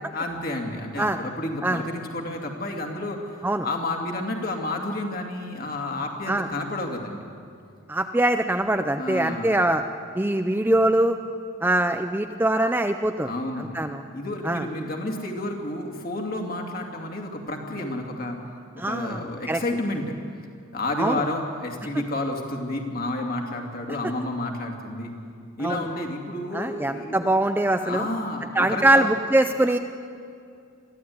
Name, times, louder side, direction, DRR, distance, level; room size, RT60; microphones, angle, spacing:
voice 1, 0.1-3.2 3.6-7.3 9.0-9.6 13.2-13.8 14.1-18.4 18.7-20.2 20.7-25.1 25.6-27.4 27.8-29.1, left 1 dB, 40° left, 2 dB, 2.6 m, -30 dB
voice 2, 7.9-9.8 10.2-11.2 11.6-13.3 13.6-14.0 14.4-14.7 18.8-19.6 21.0-21.2 25.6-25.8 26.5-28.1 28.5-29.8, right 1 dB, 10° right, 7 dB, 0.5 m, -23 dB
23.0 x 15.0 x 9.5 m, 2.3 s
head